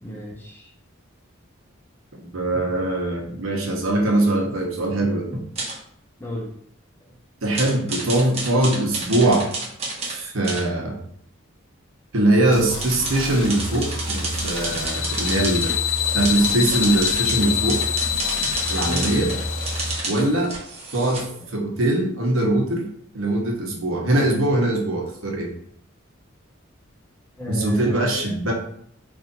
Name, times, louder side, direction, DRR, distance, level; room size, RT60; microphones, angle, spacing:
voice 1, 0.0-0.7 6.2-6.6 7.1-7.2 18.8-19.2 27.4-28.3, equal, 10° left, -2 dB, 0.7 m, -32 dB
voice 2, 2.2-5.4 7.4-9.5 10.0-11.0 12.1-15.8 16.1-17.8 18.7-19.3 20.0-20.5 20.9-21.3 21.5-22.9 23.1-25.5 27.5-28.5, right 1 dB, 85° right, 0 dB, 1.0 m, -22 dB
sound 1, 5.6-5.8 7.5-10.2 10.4-10.6 12.8-21.2, right 3 dB, 30° right, 0.9 m, -30 dB
sound 2, 12.5-19.9, equal, 70° left, 0.7 m, -31 dB
sound 3, 14.3-20.3, left 11 dB, 45° left, 0.3 m, -26 dB
3.2 x 2.6 x 3.9 m, 0.64 s
head